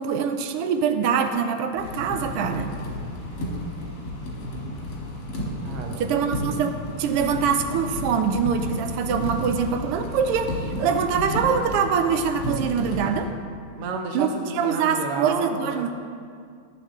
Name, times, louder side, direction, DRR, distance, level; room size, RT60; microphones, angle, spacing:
voice 1, 0.0-2.7 6.0-13.3 14.1-15.9, right 6 dB, 85° right, 8 dB, 1.6 m, -24 dB
sound 1, 1.8-13.2, equal, 85° left, 2.5 m, -32 dB
voice 2, 5.6-6.0 13.8-15.9, right 4 dB, 55° right, 2 dB, 0.9 m, -31 dB
13.0 x 7.2 x 3.6 m, 2.2 s
omnidirectional pair, 2.4 m